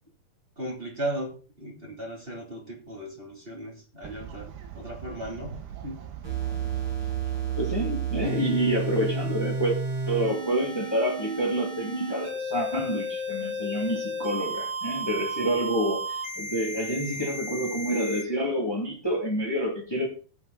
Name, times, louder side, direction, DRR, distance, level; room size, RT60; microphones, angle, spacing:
voice 1, 0.6-5.6 5.8-6.0 6.3-6.4, right 1 dB, 15° right, -2 dB, 2.5 m, -36 dB
Fowl, 4.0-9.3, right 8 dB, 75° right, 3.4 m, -43 dB
sound 1, 6.2-18.2, right 3 dB, 40° right, 7.1 m, -32 dB
voice 2, 7.6-9.8 10.1-20.1, equal, 25° left, -1 dB, 0.5 m, -28 dB
18.0 x 6.2 x 3.9 m, 0.39 s
omnidirectional pair, 4.8 m